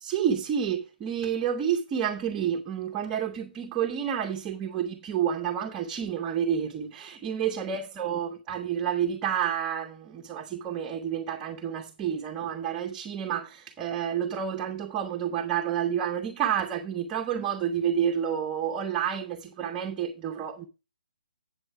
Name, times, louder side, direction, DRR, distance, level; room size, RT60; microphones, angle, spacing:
voice 1, 0.0-20.7, right 8 dB, 15° right, 0.7 m, -29 dB
8.0 x 7.8 x 4.7 m
hypercardioid pair, 155°, 5 cm